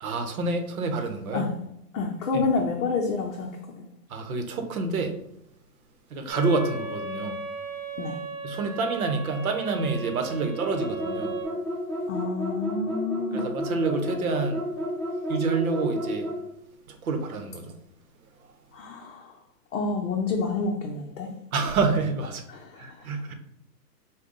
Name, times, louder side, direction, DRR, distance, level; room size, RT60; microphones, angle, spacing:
voice 1, 0.0-1.5 2.3-2.4 4.1-5.1 6.1-7.4 8.4-11.3 13.3-14.6 15.3-16.3 16.9-17.7 21.5-22.4 22.8-23.3, right 4 dB, 60° right, 5 dB, 0.9 m, -28 dB
voice 2, 1.9-3.5 3.8-3.9 8.0-8.2 12.1-13.4 18.7-19.3 19.7-21.3 22.5-22.9, left 4 dB, 50° left, 0 dB, 0.7 m, -28 dB
sound 1, 6.3-11.4, right 3 dB, 35° right, 1.1 m, -37 dB
sound 2, 10.6-16.4, equal, ahead, 1.6 m, -31 dB
5.2 x 2.3 x 3.7 m, 0.80 s
hypercardioid pair, 160°, 49 cm